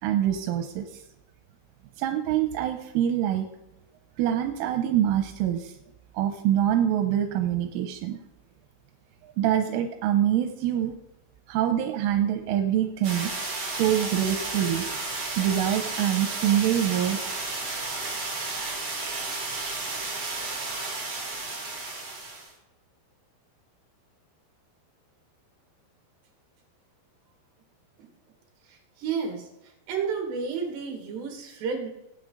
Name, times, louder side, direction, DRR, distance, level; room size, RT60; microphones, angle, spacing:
voice 1, 0.0-1.0 2.0-3.5 4.2-5.7 6.2-8.2 9.4-10.9 11.5-13.3 13.6-14.9 15.4-17.2, right 10 dB, 85° right, 5 dB, 3.4 m, -25 dB
sound 1, 13.0-22.5, right 3 dB, 35° right, 4.7 m, -32 dB
voice 2, 29.0-29.5 29.9-31.9, right 5 dB, 65° right, 2 dB, 4.2 m, -31 dB
18.5 x 9.3 x 4.0 m, 0.87 s
omnidirectional pair, 5.6 m